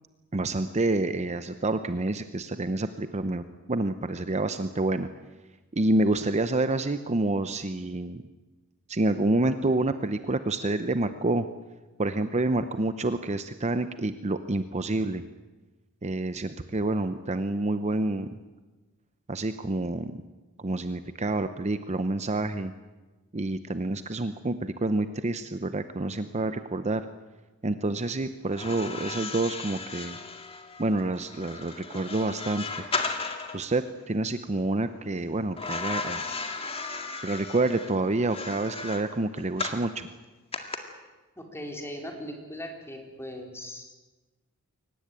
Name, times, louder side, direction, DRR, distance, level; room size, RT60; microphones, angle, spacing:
voice 1, 0.3-3.4 3.7-5.1 5.7-8.2 8.9-11.5 12.0-15.2 16.0-18.3 19.3-20.2 20.6-22.7 23.3-27.0 27.6-30.2 30.8-32.7 33.5-36.2 37.2-40.1, right 2 dB, 30° right, 10 dB, 0.7 m, -28 dB
sound 1, 28.5-33.6 35.6-39.9 40.5-40.8, left 4 dB, 25° left, 2.1 m, -35 dB
voice 2, 41.4-43.8, equal, 10° left, 2 dB, 3.8 m, -39 dB
23.0 x 19.0 x 9.0 m, 1.2 s
head